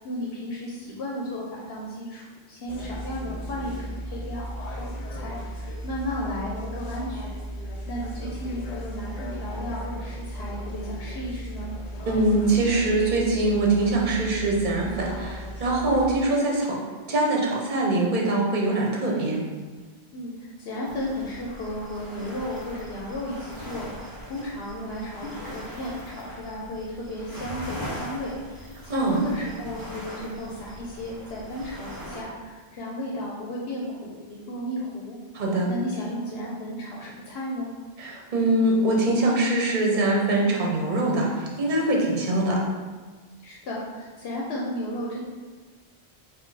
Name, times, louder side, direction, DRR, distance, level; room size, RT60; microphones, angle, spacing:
voice 1, 0.0-7.4 7.9-11.7 20.1-35.2 35.7-37.7 43.4-45.2, left 1 dB, 80° left, -4 dB, 0.9 m, -34 dB
sound 1, 2.7-16.2, equal, 50° left, 0.6 m, -36 dB
voice 2, 12.1-16.8 17.1-19.4 28.9-29.2 35.3-35.7 38.0-42.6, right 2 dB, 50° right, -2 dB, 0.9 m, -23 dB
sound 2, 20.8-32.2, equal, 20° right, 1.0 m, -40 dB
4.4 x 2.3 x 4.6 m, 1.4 s
omnidirectional pair, 1.0 m